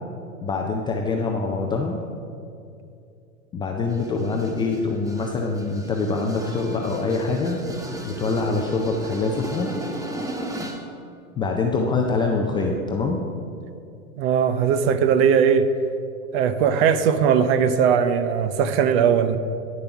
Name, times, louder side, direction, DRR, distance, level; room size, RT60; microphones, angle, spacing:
voice 1, 0.4-2.0 3.5-7.6 8.0-9.7 11.4-13.2, left 3 dB, 10° left, 0 dB, 0.4 m, -24 dB
sound 1, 3.9-10.9, right 1 dB, 10° right, 0.8 m, -35 dB
voice 2, 14.2-15.7 16.3-19.4, right 7 dB, 45° right, 11 dB, 0.7 m, -19 dB
9.7 x 6.8 x 5.7 m, 2.5 s
hypercardioid pair, 110°, 43 cm